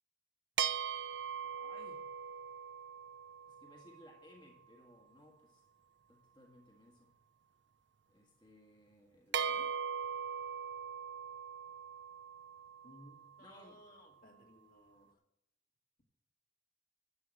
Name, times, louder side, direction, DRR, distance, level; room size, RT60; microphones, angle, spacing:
sound 1, 0.6-4.3 9.3-13.7, right 7 dB, 70° right, 0.7 m, -40 dB
voice 1, 1.4-2.0 3.5-5.6 6.1-7.1 8.1-9.7 13.4-13.8, left 1 dB, 25° left, 0 dB, 1.7 m, -61 dB
voice 2, 12.8-15.2, left 1 dB, 45° left, 1 dB, 2.0 m, -60 dB
11.5 x 7.7 x 7.7 m, 0.82 s
head